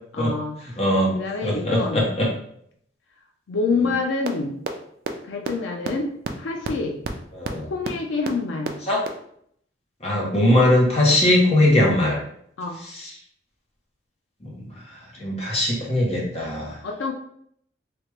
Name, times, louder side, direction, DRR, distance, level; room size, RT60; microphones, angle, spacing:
voice 1, 0.1-0.5 1.1-2.0 3.5-4.6 5.2-6.1 6.4-7.0 7.6-8.7 12.6-12.8 16.8-17.1, left 4 dB, 85° left, 2 dB, 0.4 m, -26 dB
voice 2, 0.8-2.3 7.3-7.7 8.9-9.0 10.0-12.2 12.8-13.1 14.4-16.8, left 1 dB, 35° left, -3 dB, 0.9 m, -21 dB
sound 1, 4.3-4.4 4.7-4.8 5.1-5.2 5.4-5.5 5.8-5.9 6.2-6.3 6.6-6.7 7.0-7.1 7.4-7.5 7.8-7.9 8.2-8.3 8.7-8.8 9.1-9.2, right 4 dB, 50° right, 0.3 m, -27 dB
3.3 x 2.4 x 3.1 m, 0.67 s
head